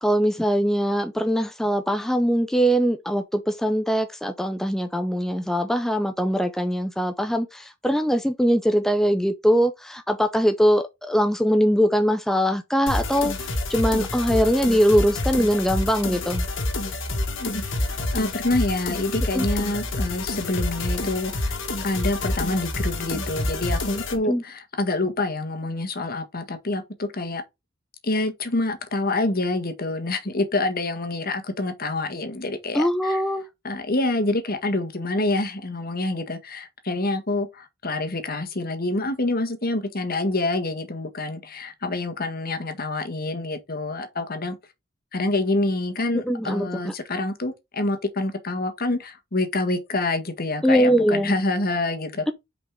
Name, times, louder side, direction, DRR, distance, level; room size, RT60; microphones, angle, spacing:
voice 1, 0.0-16.5 19.3-19.5 24.2-24.4 32.7-33.4 46.3-46.9 50.6-51.3, equal, ahead, 0.6 m, -22 dB
sound 1, 12.9-24.2, left 2 dB, 70° left, 2.1 m, -28 dB
voice 2, 18.1-21.6 21.8-27.4 28.0-33.2 33.6-44.6 45.1-52.2, left 2 dB, 50° left, 1.7 m, -27 dB
5.8 x 5.1 x 3.7 m
head